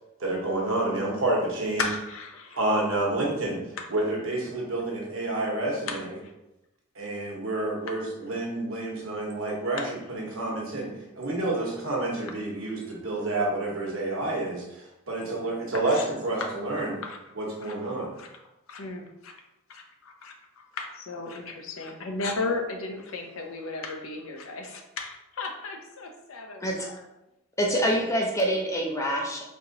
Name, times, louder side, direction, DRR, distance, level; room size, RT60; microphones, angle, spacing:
voice 1, 0.2-1.8 2.6-3.6 3.9-6.0 6.9-9.8 10.1-14.6 15.1-17.0 17.4-18.1, right 2 dB, 70° right, -2 dB, 1.1 m, -29 dB
voice 2, 1.8-2.6 3.8-3.9 5.9-6.3 9.7-9.9 12.6-12.7 13.9-14.0 15.2-15.6 15.9-16.1 16.4-17.2 17.6-17.7 18.2-18.3 18.7-19.3 19.7-27.0, left 3 dB, 75° left, 3 dB, 0.6 m, -35 dB
voice 3, 27.6-29.5, equal, 15° left, 0 dB, 0.5 m, -26 dB
4.2 x 3.0 x 2.8 m, 0.92 s
head